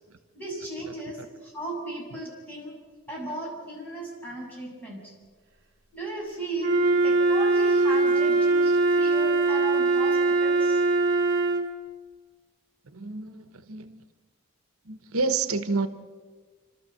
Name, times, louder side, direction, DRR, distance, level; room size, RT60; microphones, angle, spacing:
voice 1, 0.3-2.8 3.1-5.1 5.9-10.9, right 2 dB, 10° left, -5 dB, 7.5 m, -36 dB
Wind instrument woodwind instrument, 6.6-11.7, right 3 dB, 50° right, 2.4 m, -22 dB
voice 2, 12.9-14.0 14.9-15.9, right 4 dB, 80° right, 10 dB, 1.1 m, -29 dB
29.0 x 13.0 x 7.7 m, 1.5 s
head